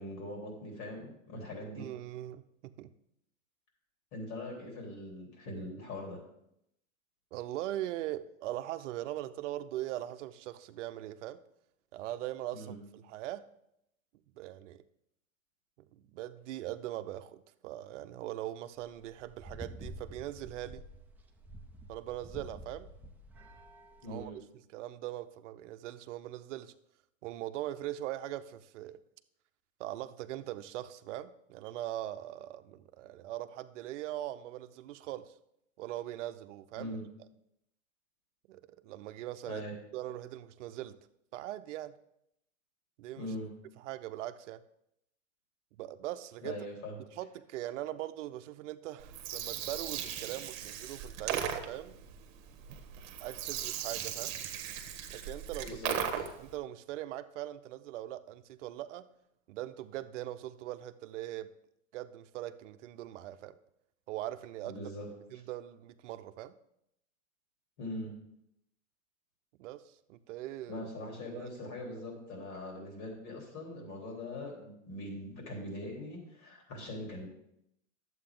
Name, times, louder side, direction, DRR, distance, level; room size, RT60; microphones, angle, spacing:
voice 1, 0.0-1.8 4.1-6.2 12.5-12.8 24.0-24.4 36.7-37.0 39.5-39.7 43.2-43.5 46.4-47.0 55.6-56.3 64.6-65.1 67.8-68.1 70.7-77.3, left 1 dB, 45° left, 0 dB, 3.5 m, -42 dB
voice 2, 1.8-2.9 7.3-11.4 11.9-13.4 14.3-14.8 15.9-20.8 21.9-22.9 24.1-24.3 24.7-26.7 27.2-29.0 29.8-35.3 35.8-37.0 38.5-39.7 39.9-41.0 41.3-41.9 43.0-43.3 43.8-44.6 45.7-46.6 47.2-52.0 53.2-54.3 55.1-55.8 56.4-59.1 59.5-61.5 61.9-63.6 64.1-64.8 65.3-66.5 69.6-70.9 71.3-71.5, right 14 dB, 60° right, 11 dB, 0.7 m, -41 dB
sound 1, 18.8-24.3, equal, 5° right, 0.6 m, -49 dB
Gurgling, 49.0-56.5, right 9 dB, 45° right, 1.3 m, -38 dB
11.0 x 7.9 x 3.8 m, 0.78 s
hypercardioid pair, 130°, 40 cm